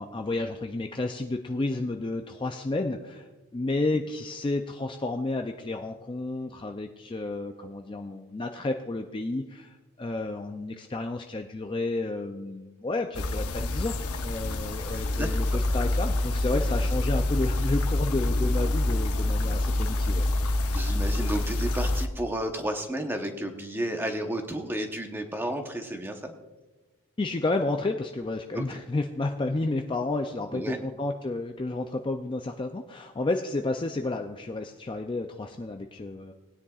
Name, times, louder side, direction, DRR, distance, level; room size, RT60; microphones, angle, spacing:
voice 1, 0.0-13.9 14.2-20.3 27.2-36.3, left 2 dB, 20° left, 4 dB, 0.4 m, -31 dB
sound 1, 13.1-22.1, left 1 dB, 85° left, 0.8 m, -26 dB
voice 2, 14.9-15.6 20.7-26.3 28.5-28.6 30.5-30.8, right 1 dB, 10° right, 4 dB, 0.9 m, -32 dB
19.5 x 9.8 x 2.4 m, 1.2 s
head